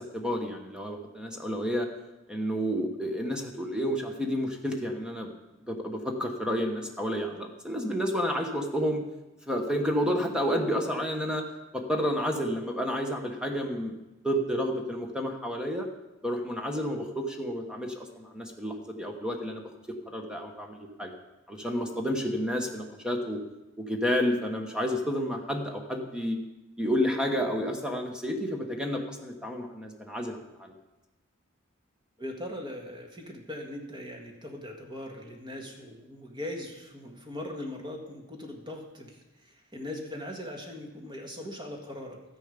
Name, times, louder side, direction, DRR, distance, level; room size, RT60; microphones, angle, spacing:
voice 1, 0.0-1.9 2.3-5.3 5.6-9.0 9.5-11.4 11.7-13.9 14.2-15.9 16.2-19.7 20.1-21.1 21.5-23.4 23.8-26.4 26.8-30.7, equal, 5° right, 3 dB, 1.2 m, -30 dB
voice 2, 32.2-42.2, left 1 dB, 20° right, 2 dB, 1.7 m, -40 dB
13.0 x 10.0 x 5.2 m, 1.0 s
head